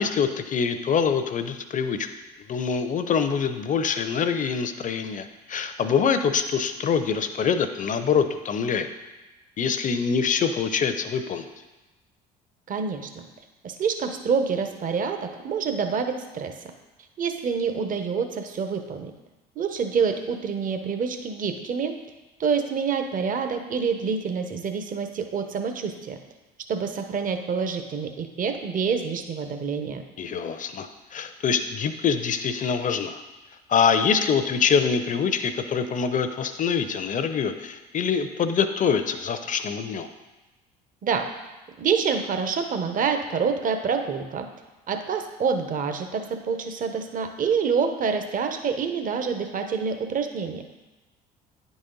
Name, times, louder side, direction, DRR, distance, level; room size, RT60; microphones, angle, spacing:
voice 1, 0.0-2.1 2.5-8.9 9.6-11.5 30.2-33.2 33.7-40.1, left 6 dB, 40° left, 9 dB, 0.7 m, -25 dB
voice 2, 12.7-13.3 13.6-16.5 17.2-19.1 19.6-21.9 22.4-26.2 26.7-30.0 41.0-41.2 41.8-44.5 44.9-50.6, right 6 dB, 40° right, 6 dB, 0.8 m, -27 dB
9.7 x 4.1 x 3.9 m, 1.1 s
hypercardioid pair, 60°, 21 cm